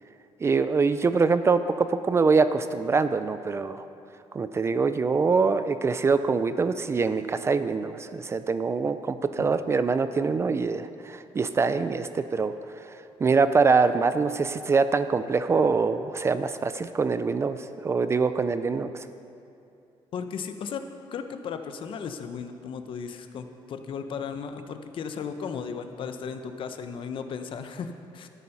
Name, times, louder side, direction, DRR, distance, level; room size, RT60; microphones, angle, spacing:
voice 1, 0.4-3.9 4.3-12.5 13.2-19.1, right 4 dB, 25° right, 11 dB, 0.4 m, -24 dB
voice 2, 20.1-20.8 21.1-28.3, left 6 dB, 55° left, 8 dB, 0.8 m, -35 dB
12.5 x 9.0 x 5.5 m, 2.7 s
cardioid pair, 135°, 10 cm